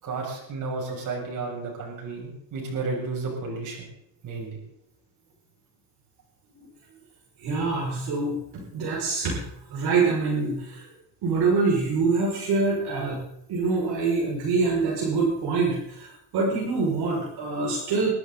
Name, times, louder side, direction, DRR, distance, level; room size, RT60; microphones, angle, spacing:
voice 1, 0.0-3.9 4.2-4.6, right 3 dB, 45° right, -2 dB, 7.2 m, -32 dB
voice 2, 7.4-9.4 9.7-10.8 11.2-13.2 13.5-18.1, right 4 dB, 60° right, -4 dB, 6.1 m, -25 dB
22.5 x 13.0 x 4.1 m, 0.81 s
cardioid pair, 145°, 42 cm